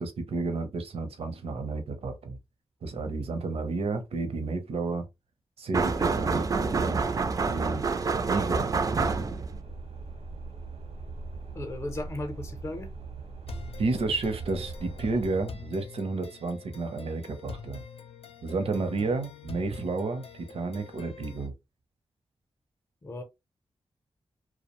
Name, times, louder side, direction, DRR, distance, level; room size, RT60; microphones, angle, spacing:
voice 1, 0.0-2.4 2.8-5.0 5.6-7.0 7.4-7.8 8.2-9.3 13.8-17.8 18.4-21.5, right 3 dB, 70° right, 0.6 m, -31 dB
sound 1, 5.7-9.6, right 4 dB, 35° right, 0.3 m, -27 dB
sound 2, 9.0-15.4, right 3 dB, 90° right, 0.9 m, -41 dB
voice 2, 11.5-12.9 23.0-23.2, left 2 dB, 25° left, 0.6 m, -36 dB
sound 3, 13.5-21.5, left 5 dB, 70° left, 0.6 m, -45 dB
2.3 x 2.1 x 2.9 m
cardioid pair, 80°, 10 cm